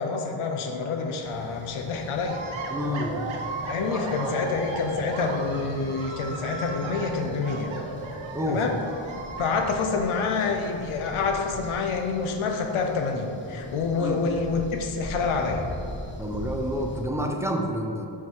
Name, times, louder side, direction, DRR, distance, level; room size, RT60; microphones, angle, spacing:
voice 1, 0.0-2.4 3.7-7.7 8.5-8.8 9.4-15.7, left 4 dB, 80° left, 3 dB, 0.7 m, -27 dB
sound 1, 1.2-17.0, left 1 dB, 25° left, 0.7 m, -41 dB
sound 2, 2.2-9.8, right 3 dB, 70° right, 0.8 m, -36 dB
voice 2, 2.7-3.3 3.9-4.4 8.3-8.6 14.0-14.2 16.2-18.1, equal, 5° right, 2 dB, 0.3 m, -29 dB
5.7 x 4.8 x 4.6 m, 2.6 s
wide cardioid pair, 165°, 49 cm